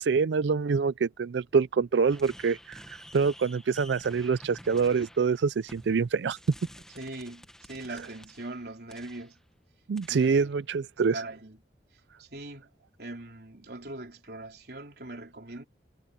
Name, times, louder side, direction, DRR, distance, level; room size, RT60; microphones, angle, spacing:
voice 1, 0.0-2.8 3.1-6.4 9.9-11.2, right 5 dB, 80° right, 0.4 m, -25 dB
sound 1, 2.1-9.4 10.0-10.5, equal, 5° left, 1.3 m, -51 dB
voice 2, 7.0-9.4 10.1-10.5 11.1-11.6 12.2-12.7 13.0-15.6, right 2 dB, 60° right, 4.2 m, -41 dB
head